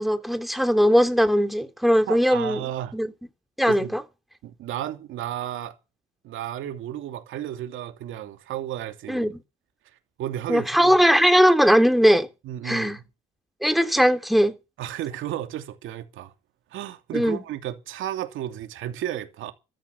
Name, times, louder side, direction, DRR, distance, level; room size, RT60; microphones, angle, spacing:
voice 1, 0.0-2.6 2.9-3.1 3.6-4.0 9.1-9.4 10.5-12.3 12.6-13.0 13.6-14.5 17.1-17.4, equal, ahead, 3.2 m, -19 dB
voice 2, 2.1-2.9 3.7-4.0 4.4-5.8 6.2-9.3 10.2-11.0 12.4-13.0 14.8-16.3 16.7-19.5, right 11 dB, 85° right, 2.8 m, -33 dB
14.0 x 13.5 x 7.0 m
cardioid pair, 90°, 20 cm